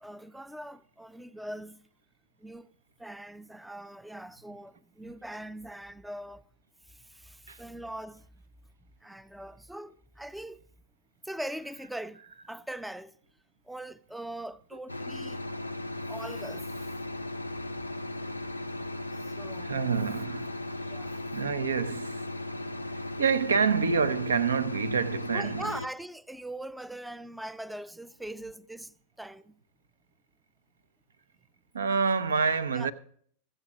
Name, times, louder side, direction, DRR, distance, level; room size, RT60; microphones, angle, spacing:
voice 1, 0.0-1.8 2.4-2.7 3.0-6.4 6.9-8.3 9.0-10.6 11.2-12.2 12.5-13.2 13.7-15.4 16.1-16.9 19.2-19.8 20.9-21.2 25.3-29.6 32.7-32.9, right 1 dB, 5° right, 0.4 m, -41 dB
sound 1, 14.9-25.9, left 2 dB, 85° left, 0.5 m, -37 dB
voice 2, 19.6-20.6 21.3-22.2 23.2-25.7 31.7-32.9, right 5 dB, 70° right, 0.6 m, -27 dB
14.5 x 7.7 x 5.0 m
figure-of-eight pair, 90°, 0 cm